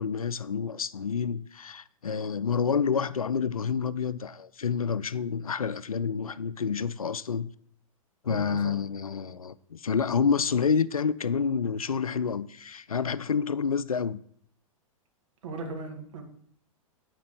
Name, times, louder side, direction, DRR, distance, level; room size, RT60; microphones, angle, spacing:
voice 1, 0.0-7.5 8.2-14.2, left 6 dB, 85° left, 0.5 m, -28 dB
voice 2, 8.3-8.7 15.4-16.2, right 3 dB, 60° right, 2.0 m, -37 dB
9.4 x 4.5 x 6.7 m
figure-of-eight pair, 105°, 18 cm